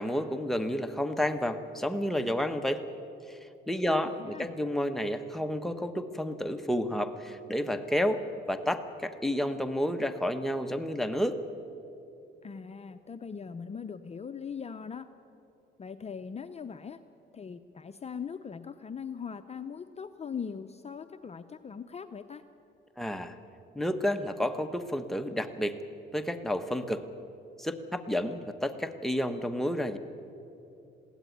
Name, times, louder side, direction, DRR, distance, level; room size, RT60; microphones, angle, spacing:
voice 1, 0.0-2.8 3.3-3.4 3.7-11.4 23.0-23.4 23.7-25.7 26.1-27.0 27.6-30.0, equal, ahead, 6 dB, 1.3 m, -30 dB
voice 2, 3.9-4.5 12.4-15.1 15.8-17.0 17.3-22.4, left 6 dB, 30° left, 9 dB, 0.7 m, -40 dB
21.5 x 16.0 x 9.4 m, 2.8 s
cardioid pair, 90°, 20 cm